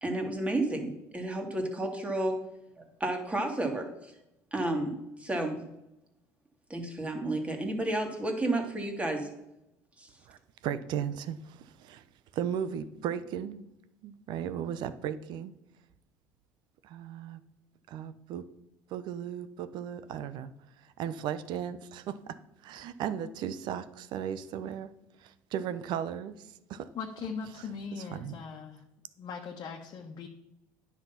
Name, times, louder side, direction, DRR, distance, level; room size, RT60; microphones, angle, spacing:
voice 1, 0.0-2.4 2.7-4.1 4.5-5.7 6.7-9.3 10.0-10.1, right 1 dB, 15° right, 4 dB, 2.2 m, -31 dB
voice 2, 10.6-12.0 12.3-13.6 14.0-15.5 16.8-17.4 17.9-18.4 18.9-20.5 21.0-22.3 22.6-24.9 25.2-26.9 28.0-28.4, right 9 dB, 65° right, 13 dB, 0.8 m, -36 dB
voice 3, 26.9-28.8 29.2-30.3, left 5 dB, 50° left, 1 dB, 1.3 m, -40 dB
9.8 x 6.0 x 5.7 m, 0.86 s
supercardioid pair, 95°, 8 cm